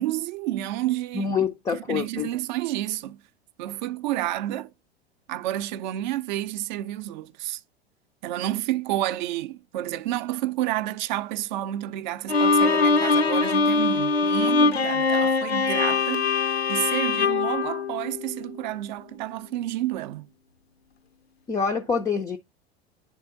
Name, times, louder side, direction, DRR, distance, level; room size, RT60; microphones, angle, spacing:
voice 1, 0.0-1.3 1.7-3.2 3.6-4.7 5.3-7.6 8.2-16.4 16.7-20.3, right 14 dB, 50° right, 0.5 m, -30 dB
voice 2, 1.1-2.3 21.5-22.4, left 6 dB, 10° left, 0.3 m, -26 dB
Bowed string instrument, 12.3-18.6, left 4 dB, 85° left, 0.6 m, -22 dB
11.0 x 3.6 x 2.5 m
figure-of-eight pair, 85°, 31 cm